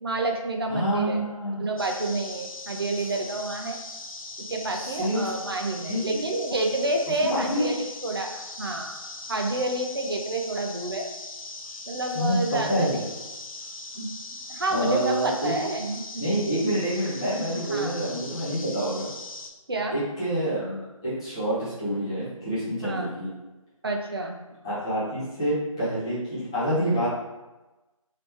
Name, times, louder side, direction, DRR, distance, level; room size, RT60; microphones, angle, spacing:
voice 1, 0.0-1.2 1.6-3.8 4.5-8.3 8.6-9.0 9.3-11.1 11.9-12.9 13.9-14.1 14.5-16.1 17.7-17.9 19.7-20.0 22.8-23.1 23.8-24.4, right 2 dB, 45° right, 2 dB, 0.5 m, -29 dB
voice 2, 0.7-1.7 4.7-5.3 5.8-6.2 7.3-7.7 12.1-13.0 14.7-15.5 16.2-19.1 19.9-23.3 24.6-27.1, equal, 10° left, -11 dB, 0.5 m, -27 dB
sound 1, 1.8-19.5, left 2 dB, 70° left, 0.6 m, -40 dB
3.1 x 2.8 x 3.3 m, 1.1 s
figure-of-eight pair, 160°, 18 cm